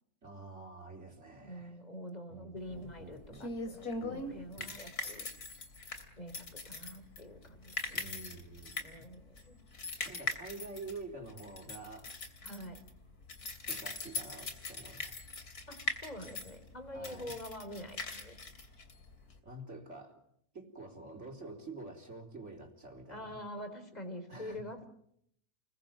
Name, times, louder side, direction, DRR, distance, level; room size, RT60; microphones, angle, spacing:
voice 1, 0.2-1.8 2.3-3.5 4.0-4.8 7.9-9.1 10.0-12.1 13.7-15.1 16.9-17.3 19.4-20.2 20.5-23.5 24.3-24.6, right 3 dB, 50° right, 2 dB, 4.4 m, -48 dB
voice 2, 1.4-5.3 6.2-8.3 8.8-9.6 12.4-12.8 15.7-18.4 23.1-24.9, equal, 25° left, 8 dB, 4.1 m, -46 dB
sound 1, 2.7-19.4, left 3 dB, 80° left, 3.5 m, -41 dB
28.5 x 21.0 x 7.7 m, 0.72 s
omnidirectional pair, 1.6 m